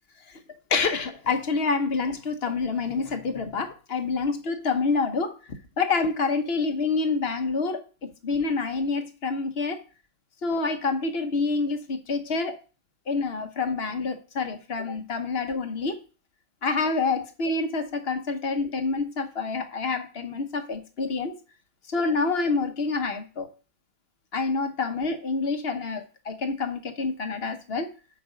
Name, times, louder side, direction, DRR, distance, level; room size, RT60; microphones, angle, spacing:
voice 1, 0.7-5.4 5.8-9.8 10.4-12.6 13.1-16.0 16.6-21.4 21.9-23.5 24.3-27.9, left 4 dB, 45° left, 1.2 m, -27 dB
7.8 x 5.4 x 5.0 m
omnidirectional pair, 1.5 m